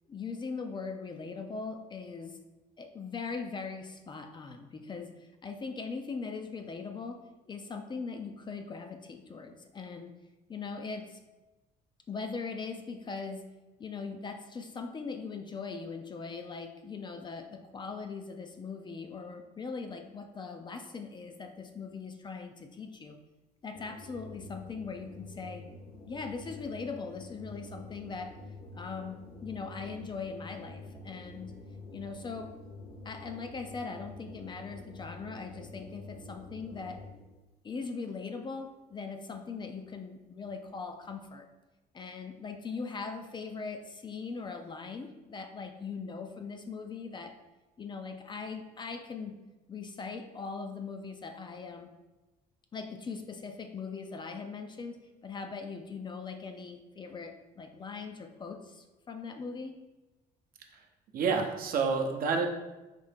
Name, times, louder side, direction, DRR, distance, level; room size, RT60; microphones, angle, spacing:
voice 1, 0.1-2.4 2.8-7.2 7.5-10.1 10.5-11.2 12.1-13.5 13.8-23.2 23.6-25.6 26.1-28.4 28.7-31.5 31.9-32.5 33.0-37.0 37.6-41.5 41.9-47.4 47.8-49.4 49.7-51.9 52.7-59.8, left 4 dB, 25° left, 6 dB, 0.4 m, -40 dB
sound 1, 23.7-37.4, left 2 dB, 60° left, 0.9 m, -48 dB
voice 2, 61.1-62.5, right 5 dB, 60° right, 3 dB, 0.7 m, -28 dB
5.0 x 2.7 x 3.4 m, 1.1 s
cardioid pair, 110°, 17 cm